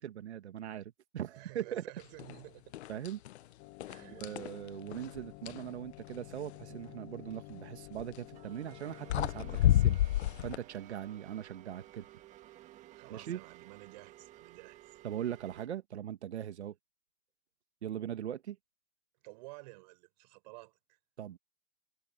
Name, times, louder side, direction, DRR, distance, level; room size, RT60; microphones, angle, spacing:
voice 1, 0.0-1.8 2.9-3.2 4.1-10.0 10.4-12.0 13.1-13.4 15.0-16.7 17.8-18.6 21.2-21.4, right 10 dB, 85° right, 1.8 m, -40 dB
voice 2, 1.3-2.7 3.9-4.3 12.9-15.0 19.2-21.0, right 25 dB, 40° right, 4.0 m, -52 dB
sound 1, 2.2-2.4 2.7-3.4 3.8-5.7 7.9-8.2 8.8-8.9 9.1-10.6, left 13 dB, 80° left, 0.6 m, -30 dB
sound 2, 3.6-9.9, left 21 dB, 30° left, 1.7 m, -51 dB
sound 3, 8.3-15.7, right 14 dB, 20° right, 1.7 m, -55 dB
hypercardioid pair, 155°, 33 cm